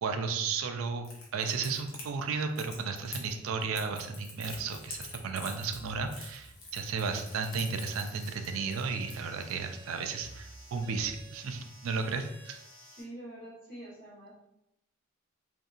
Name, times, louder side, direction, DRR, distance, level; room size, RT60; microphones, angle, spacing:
voice 1, 0.0-1.1 1.3-12.6, right 5 dB, 85° right, 6 dB, 0.4 m, -34 dB
Crackle, 1.0-9.5, left 3 dB, 80° left, 0.8 m, -46 dB
sound 1, 4.5-11.2, right 2 dB, 30° right, 0.6 m, -56 dB
sound 2, 7.0-13.0, right 1 dB, 10° left, 1.1 m, -54 dB
voice 2, 13.0-14.3, right 1 dB, 50° left, -8 dB, 1.2 m, -46 dB
2.8 x 2.6 x 2.4 m, 0.83 s
head